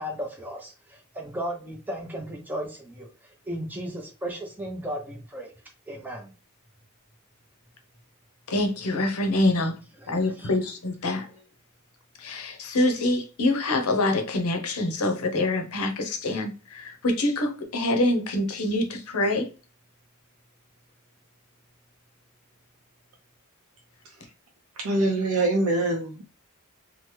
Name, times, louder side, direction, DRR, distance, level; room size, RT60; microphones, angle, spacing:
voice 1, 0.0-3.1 3.5-5.5 5.9-6.3 10.0-10.6 11.2-11.4, equal, 10° right, 0.6 m, -35 dB
voice 2, 8.5-9.8 10.1-11.3 12.2-19.5, left 2 dB, 80° left, 0.7 m, -25 dB
voice 3, 24.8-26.3, right 2 dB, 70° right, 0.5 m, -24 dB
3.0 x 2.1 x 3.1 m
head